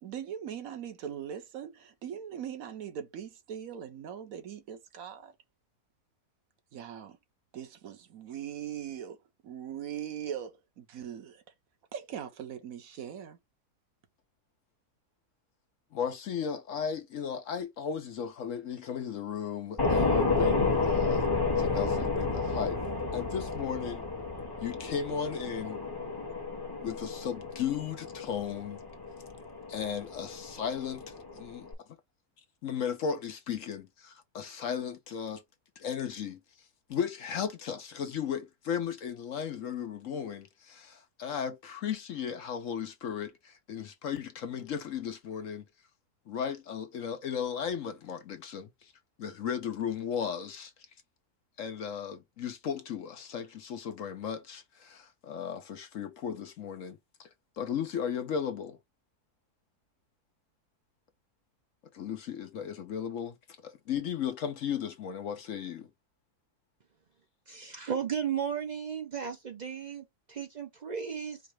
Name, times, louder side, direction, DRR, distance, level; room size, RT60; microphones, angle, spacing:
voice 1, 0.0-5.3 6.7-7.2 7.5-9.2 9.4-11.4 11.9-13.4, right 9 dB, 65° right, 1.3 m, -40 dB
voice 2, 15.9-22.8 23.1-24.1 24.6-25.8 26.8-28.8 29.7-31.7 32.6-35.4 35.8-36.4 36.9-45.6 46.3-48.9 49.2-50.7 51.6-57.3 57.6-58.8 61.9-63.4 63.6-65.9, left 7 dB, 60° left, 1.0 m, -35 dB
sound 1, 19.8-31.7, left 4 dB, 15° left, 0.9 m, -31 dB
voice 3, 67.5-71.4, right 7 dB, 85° right, 0.3 m, -35 dB
4.9 x 2.0 x 4.7 m
omnidirectional pair, 1.7 m